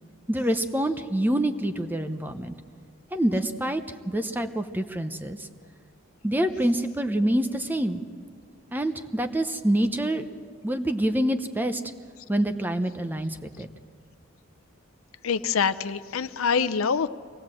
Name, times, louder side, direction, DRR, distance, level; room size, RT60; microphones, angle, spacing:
voice 1, 0.3-2.5 3.1-5.5 6.2-8.0 8.7-10.3 10.6-11.8 12.3-13.7, right 1 dB, 10° right, 7 dB, 0.8 m, -26 dB
voice 2, 15.2-17.1, left 6 dB, 90° left, 13 dB, 0.7 m, -25 dB
24.5 x 19.0 x 7.6 m, 2.1 s
head